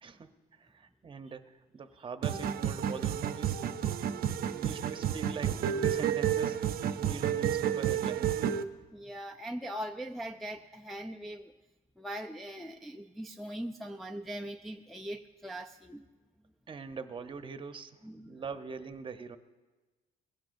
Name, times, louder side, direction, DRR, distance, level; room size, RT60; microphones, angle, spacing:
voice 1, 0.0-8.3 16.7-18.0 18.3-19.4, right 5 dB, 30° right, 9 dB, 0.9 m, -43 dB
sound 1, 2.2-8.6, right 9 dB, 60° right, 0.7 m, -30 dB
voice 2, 8.9-11.5 12.0-16.1 18.0-18.4, right 1 dB, ahead, 2 dB, 0.4 m, -41 dB
21.0 x 16.5 x 2.6 m, 1.2 s
cardioid pair, 110°, 17 cm